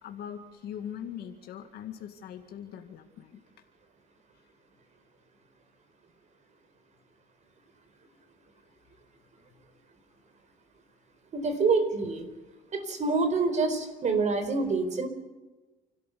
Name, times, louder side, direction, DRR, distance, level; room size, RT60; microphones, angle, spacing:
voice 1, 0.0-3.4 9.5-9.6, left 9 dB, 70° left, 4 dB, 2.0 m, -41 dB
voice 2, 11.3-12.3 12.7-15.1, right 4 dB, 45° right, 9 dB, 4.4 m, -26 dB
29.5 x 13.5 x 6.9 m, 1.2 s
cardioid pair, 110°, 17 cm